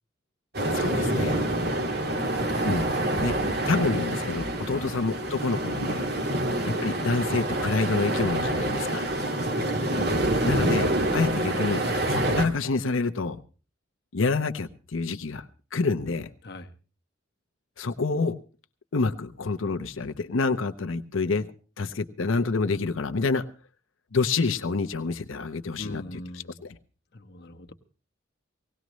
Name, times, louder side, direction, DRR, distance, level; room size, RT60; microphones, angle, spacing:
sound 1, 0.5-12.5, right 1 dB, 50° right, 1.9 m, -27 dB
voice 1, 0.7-1.4 2.6-2.9 3.2-3.3 3.7-6.0 6.7-9.0 10.4-13.4 14.1-16.3 17.8-18.4 18.9-21.5 21.8-23.4 24.1-26.7, left 4 dB, 80° left, 9 dB, 0.8 m, -28 dB
voice 2, 1.4-2.4 4.7-4.9 6.2-6.5 9.2-9.7 16.4-16.7 25.8-26.6 27.1-27.7, left 2 dB, 55° left, 5 dB, 1.1 m, -41 dB
19.0 x 17.5 x 3.1 m, 0.36 s
head